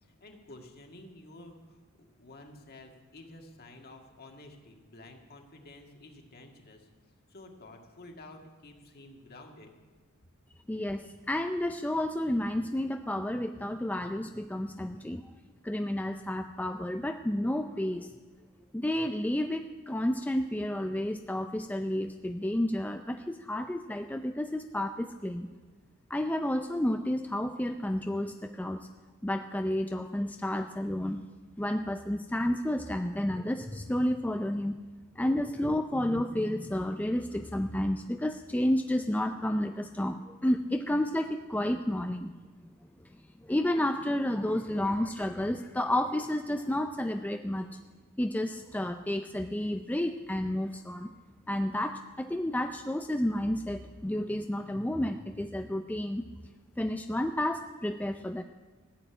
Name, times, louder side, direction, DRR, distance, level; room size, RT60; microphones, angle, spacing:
voice 1, 0.0-6.9 7.3-9.7, left 2 dB, 50° left, 3 dB, 1.9 m, -51 dB
voice 2, 10.7-15.2 15.6-18.1 18.7-25.5 26.1-28.9 29.2-31.2 31.6-34.8 35.2-42.3 43.4-47.8 48.2-51.1 51.5-56.2 56.8-58.4, left 1 dB, 5° left, 6 dB, 0.4 m, -31 dB
15.0 x 7.8 x 9.8 m, 1.3 s
head